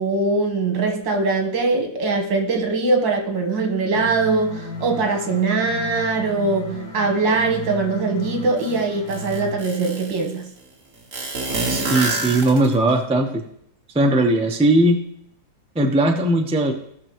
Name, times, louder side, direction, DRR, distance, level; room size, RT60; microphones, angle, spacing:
voice 1, 0.0-10.5, right 3 dB, 75° right, 3 dB, 2.0 m, -22 dB
sound 1, 3.9-9.5, equal, 50° left, 2.7 m, -34 dB
sound 2, 8.6-8.7 9.1-10.2 11.1-12.9, right 2 dB, 45° right, 1.7 m, -26 dB
voice 2, 11.7-13.4 13.9-15.0 15.7-16.7, right 1 dB, 10° right, 2 dB, 0.4 m, -18 dB
17.5 x 6.1 x 3.1 m, 0.73 s
omnidirectional pair, 2.1 m